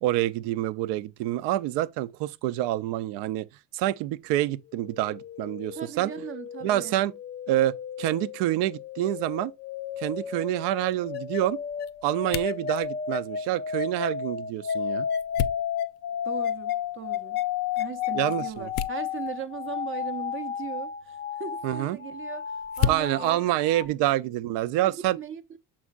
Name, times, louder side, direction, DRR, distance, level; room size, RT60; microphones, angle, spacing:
voice 1, 0.0-3.5 3.7-6.1 6.6-7.1 7.5-9.5 10.0-11.6 12.0-15.1 18.1-18.7 21.6-22.0 22.9-25.2, right 14 dB, 70° right, 0.6 m, -27 dB
sound 1, 4.7-23.9, left 8 dB, 25° left, 0.4 m, -33 dB
voice 2, 5.7-7.0 16.2-17.4 17.8-23.4 23.8-24.0 24.8-25.6, right 9 dB, 30° right, 0.6 m, -38 dB
sound 2, 9.8-24.7, left 10 dB, 85° left, 0.7 m, -38 dB
7.3 x 5.5 x 2.4 m
cardioid pair, 170°, 44 cm